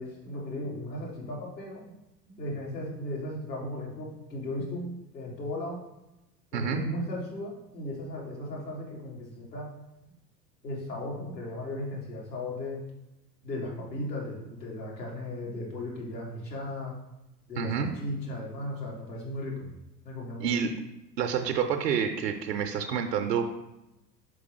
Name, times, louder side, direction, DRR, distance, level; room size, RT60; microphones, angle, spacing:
voice 1, 0.0-1.9 2.3-5.8 6.5-9.8 10.6-12.8 13.4-17.0 17.5-19.8 20.0-20.6, left 1 dB, 80° left, -4 dB, 1.7 m, -36 dB
voice 2, 17.6-17.9 20.4-20.7 21.2-23.5, right 7 dB, 75° right, 5 dB, 0.6 m, -28 dB
6.1 x 4.9 x 3.2 m, 0.94 s
figure-of-eight pair, 75°, 49 cm